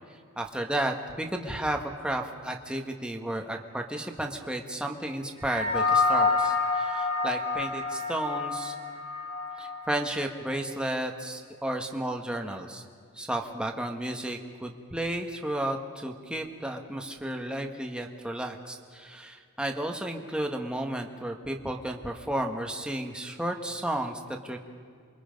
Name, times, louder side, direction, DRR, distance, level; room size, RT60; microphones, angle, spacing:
voice 1, 0.4-8.7 9.6-12.8 13.2-24.6, right 1 dB, 5° right, 2 dB, 1.4 m, -33 dB
sound 1, 5.4-10.0, left 3 dB, 85° left, 6.0 m, -28 dB
28.0 x 23.0 x 5.3 m, 2.2 s
head